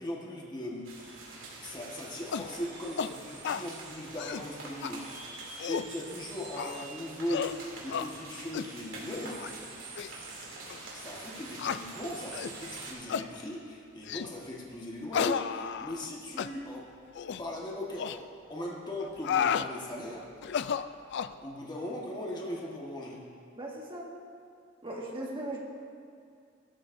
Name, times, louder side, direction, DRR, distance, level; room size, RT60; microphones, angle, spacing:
voice 1, 0.0-5.3 5.7-9.4 10.9-16.9 17.4-20.2 21.4-23.2, left 1 dB, 20° left, -3 dB, 1.4 m, -39 dB
sound 1, 0.8-12.9, right 3 dB, 80° right, 2.8 m, -45 dB
sound 2, 2.3-2.5 3.0-3.1 3.4-3.7 4.1-4.5 4.8-4.9 5.4-5.9 6.6-6.9 7.3-7.6 7.9-8.1 8.5-8.7 9.3-9.5 10.0-10.1 10.7-10.8 11.6-11.8 12.3-12.6 13.1-13.3 14.1-14.3 15.1-16.1 16.4-16.5 17.1-17.4 18.0-18.2 19.0-19.7 20.4-21.4, left 7 dB, 60° left, 0.3 m, -32 dB
voice 2, 23.5-24.1 24.8-25.6, right 1 dB, 25° right, -2 dB, 1.7 m, -38 dB
16.0 x 13.0 x 2.6 m, 2.3 s
head